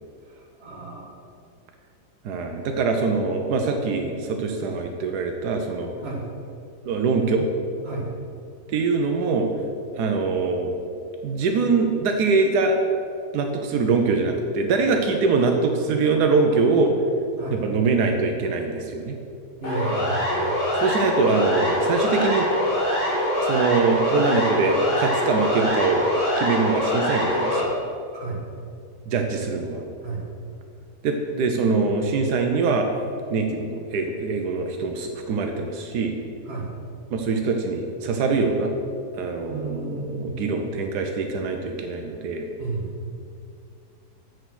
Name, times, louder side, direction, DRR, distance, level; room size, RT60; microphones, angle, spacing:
voice 1, 0.2-1.1 6.0-6.2 7.8-8.1 17.4-17.6 19.6-20.6 28.1-28.4 30.0-30.2 36.4-36.7 39.5-40.4 42.6-43.0, right 3 dB, 40° right, -3 dB, 2.0 m, -32 dB
voice 2, 2.2-5.9 6.8-7.5 8.7-9.5 9.9-10.7 11.2-12.8 13.3-17.0 17.5-19.2 20.8-22.5 23.4-26.0 26.4-27.7 29.1-29.8 31.0-32.9 33.3-36.1 37.1-38.7 39.2-42.5, right 4 dB, 85° right, 4 dB, 1.3 m, -23 dB
Siren, 19.6-27.6, equal, 50° left, 2.4 m, -24 dB
7.8 x 7.2 x 6.1 m, 2.4 s
omnidirectional pair, 1.7 m